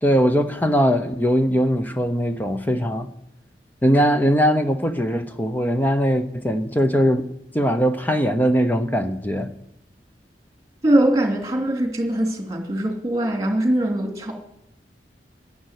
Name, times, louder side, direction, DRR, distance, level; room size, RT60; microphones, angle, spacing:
voice 1, 0.0-3.1 3.8-7.3 7.5-9.5, equal, 10° left, 7 dB, 0.8 m, -20 dB
voice 2, 10.8-14.3, right 1 dB, 20° right, 2 dB, 2.6 m, -21 dB
11.0 x 10.0 x 8.1 m, 0.79 s
head